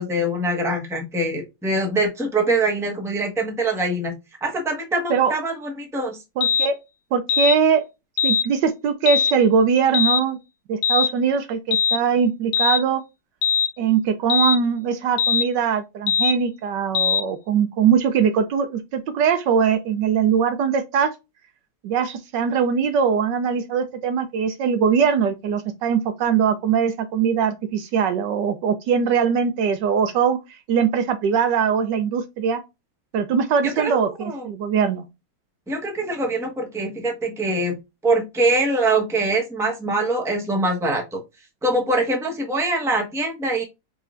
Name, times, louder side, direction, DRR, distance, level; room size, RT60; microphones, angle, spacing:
voice 1, 0.0-4.1 4.4-6.2 33.6-34.4 35.7-37.7 38.0-41.2 41.6-43.6, right 2 dB, ahead, 0.9 m, -23 dB
sound 1, 6.4-6.7 7.3-7.6 8.2-8.5 9.1-9.3 9.9-10.2 10.8-11.1 11.7-12.0 12.5-12.8 13.4-13.7 14.3-14.6 15.2-15.5 16.1-16.4 16.9-17.2, left 7 dB, 75° left, 0.9 m, -20 dB
voice 2, 6.4-6.8 7.1-7.8 8.2-10.4 10.7-13.0 13.8-21.1 21.8-32.6 33.1-35.0, right 7 dB, 75° right, 1.2 m, -21 dB
4.8 x 4.2 x 2.4 m
omnidirectional pair, 2.1 m